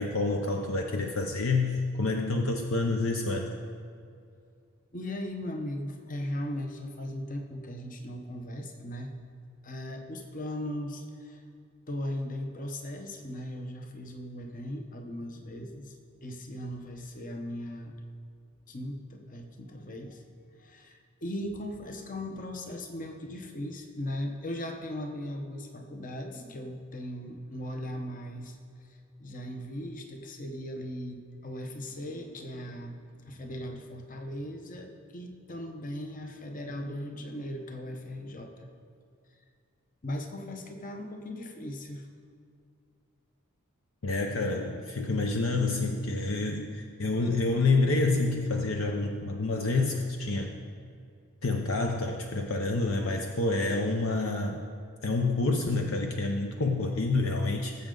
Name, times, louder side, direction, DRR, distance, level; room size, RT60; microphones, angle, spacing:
voice 1, 0.0-3.5 44.0-50.5 51.4-54.6 55.0-57.9, left 3 dB, 65° left, 3 dB, 0.7 m, -28 dB
voice 2, 4.9-9.1 9.6-11.4 11.9-15.9 16.2-18.0 18.7-20.2 20.6-28.6 28.9-33.0 33.2-38.7 40.0-42.1, left 1 dB, 40° left, 4 dB, 0.9 m, -38 dB
18.0 x 7.5 x 3.9 m, 2.3 s
head